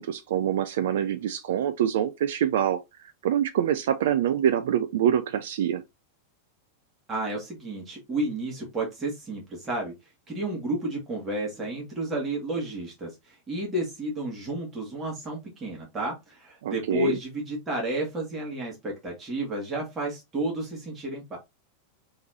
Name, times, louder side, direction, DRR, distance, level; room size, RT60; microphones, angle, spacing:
voice 1, 0.0-2.8 3.2-5.8 16.6-17.2, right 10 dB, 55° right, 0.4 m, -25 dB
voice 2, 7.1-9.9 10.3-21.4, right 1 dB, 20° right, 2.0 m, -31 dB
4.3 x 3.6 x 2.8 m
figure-of-eight pair, 90°, 0 cm